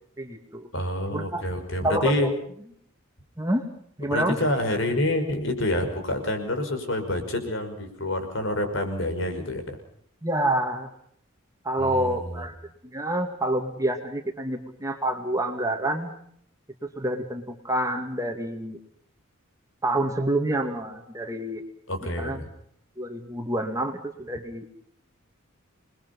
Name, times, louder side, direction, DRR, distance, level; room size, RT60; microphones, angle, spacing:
voice 1, 0.2-0.7 1.1-1.4 1.8-2.3 3.4-3.6 4.0-4.4 10.2-10.9 11.6-12.5 12.8-16.1 16.8-18.8 19.8-21.6 22.2-22.4 23.0-24.6, right 1 dB, 15° right, 4 dB, 2.3 m, -27 dB
voice 2, 0.7-2.3 4.1-9.8 11.8-12.5 21.9-22.4, left 1 dB, 60° left, 6 dB, 5.8 m, -27 dB
28.0 x 22.0 x 5.5 m, 0.64 s
head